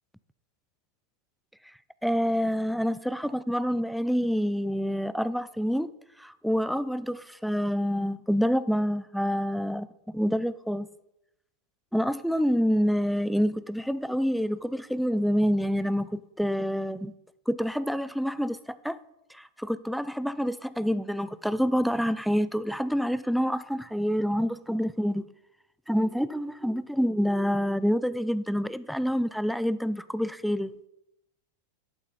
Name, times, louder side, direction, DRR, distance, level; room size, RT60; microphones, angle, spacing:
voice 1, 2.0-5.9 6.2-10.9 11.9-17.1 17.5-19.0 19.3-25.2 25.9-30.7, equal, ahead, 0.4 m, -27 dB
11.5 x 7.2 x 4.0 m
figure-of-eight pair, 90°, 0 cm